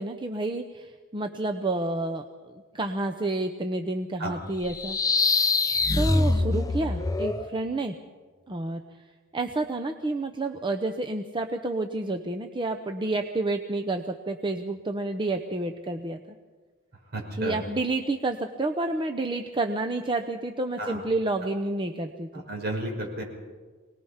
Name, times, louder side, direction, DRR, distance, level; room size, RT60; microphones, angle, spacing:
voice 1, 0.0-5.0 5.9-7.9 8.5-8.8 9.3-16.4 17.4-22.4, right 2 dB, 25° right, 5 dB, 0.8 m, -29 dB
sound 1, 4.7-7.5, left 3 dB, 15° left, 0.6 m, -24 dB
voice 2, 17.1-17.6 20.8-21.0 22.5-23.2, right 1 dB, 50° right, 0 dB, 5.8 m, -32 dB
24.5 x 19.5 x 5.7 m, 1.4 s
head